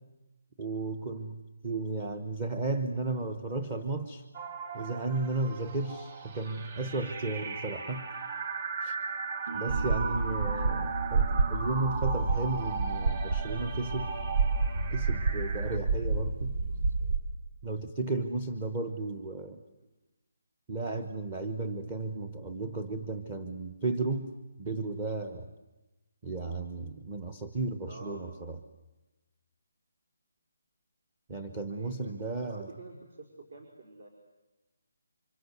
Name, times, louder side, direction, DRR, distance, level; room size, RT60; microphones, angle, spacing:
voice 1, 0.6-4.2 4.7-8.0 8.8-9.0 9.5-14.1 14.9-16.6 17.6-19.6 20.7-24.3 24.6-25.5 26.2-28.6 31.3-32.7, right 3 dB, 15° right, 9 dB, 1.0 m, -34 dB
sound 1, 4.3-15.8, right 5 dB, 30° right, 3.1 m, -38 dB
sound 2, 9.5-16.4, right 4 dB, 90° right, 1.8 m, -45 dB
sound 3, 9.7-17.2, right 4 dB, 75° right, 3.6 m, -29 dB
voice 2, 27.8-28.2 31.7-34.1, right 3 dB, 55° right, 3 dB, 5.1 m, -48 dB
29.0 x 25.5 x 8.1 m, 1.1 s
hypercardioid pair, 175°, 0 cm